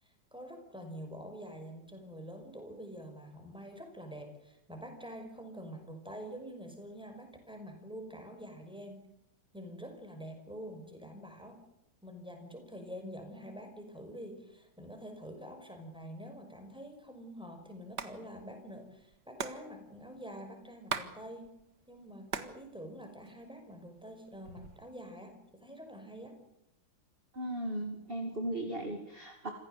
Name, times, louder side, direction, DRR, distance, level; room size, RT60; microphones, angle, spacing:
voice 1, 0.0-9.1 9.5-11.6 12.0-21.5 21.9-26.4, equal, ahead, 5 dB, 5.5 m, -46 dB
Hands, 17.8-18.1 18.4-18.5 18.7-21.1 21.4-22.6 22.9-23.7 24.3-24.9, right 6 dB, 65° right, 2.2 m, -39 dB
voice 2, 27.3-29.5, right 1 dB, 30° right, 3 dB, 2.7 m, -37 dB
26.5 x 16.0 x 8.0 m, 0.82 s
omnidirectional pair, 2.0 m